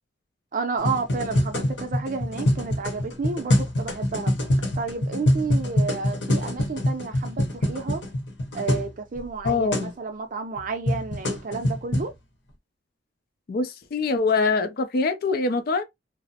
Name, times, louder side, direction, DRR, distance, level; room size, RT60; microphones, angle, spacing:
voice 1, 0.5-4.3 4.8-8.0 8.5-12.1, right 4 dB, 45° right, 0.5 m, -31 dB
sound 1, 0.8-8.9 9.1-9.2 9.4-9.9 10.6-12.1, left 1 dB, 70° left, 0.8 m, -25 dB
voice 2, 9.4-9.9 13.5-15.8, left 4 dB, 55° left, 0.4 m, -24 dB
2.4 x 2.0 x 2.7 m
head